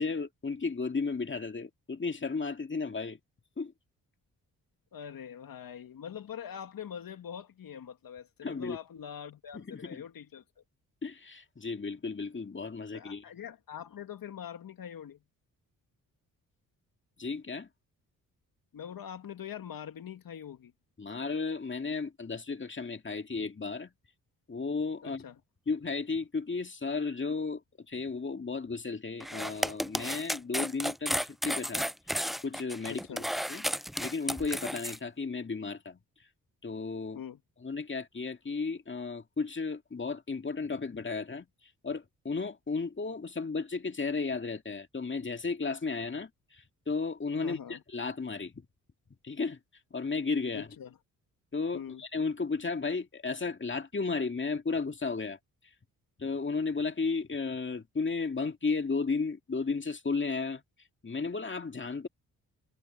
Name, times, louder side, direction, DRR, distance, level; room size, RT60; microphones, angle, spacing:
voice 1, 0.0-3.2 3.6-3.7 8.4-8.8 9.5-10.0 11.0-13.2 17.2-17.7 21.0-23.9 24.5-25.2 25.7-33.2 33.5-33.6 34.0-36.0 36.6-37.2 37.6-41.5 41.8-48.7 49.2-49.6 49.9-50.7 51.5-55.4 56.2-60.6 61.0-62.1, left 4 dB, 30° left, 2.2 m, -34 dB
voice 2, 4.9-10.4 12.9-15.2 18.7-20.7 25.0-25.4 32.9-33.2 37.1-37.4 47.4-47.8 50.5-50.9 51.7-52.0, left 8 dB, 65° left, 2.5 m, -43 dB
sound 1, 29.2-35.0, equal, ahead, 0.4 m, -33 dB
supercardioid pair, 50°, 37 cm